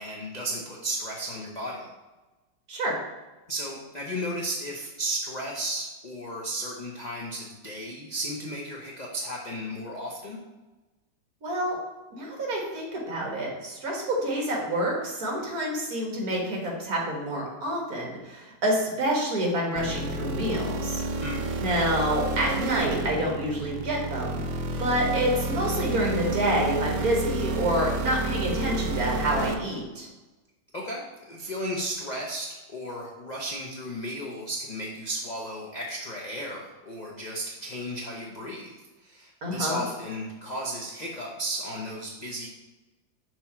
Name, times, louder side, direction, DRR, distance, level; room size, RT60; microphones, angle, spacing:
voice 1, 0.0-1.9 3.5-10.4 21.2-21.5 30.7-42.5, right 1 dB, 50° left, -3 dB, 0.5 m, -34 dB
voice 2, 11.4-11.8 12.1-21.0 21.6-24.5 24.8-30.1 39.4-39.8, right 1 dB, 55° right, -1 dB, 1.8 m, -28 dB
sound 1, 19.8-29.5, right 2 dB, 80° right, 1.3 m, -30 dB
6.1 x 3.0 x 5.7 m, 1.1 s
omnidirectional pair, 1.9 m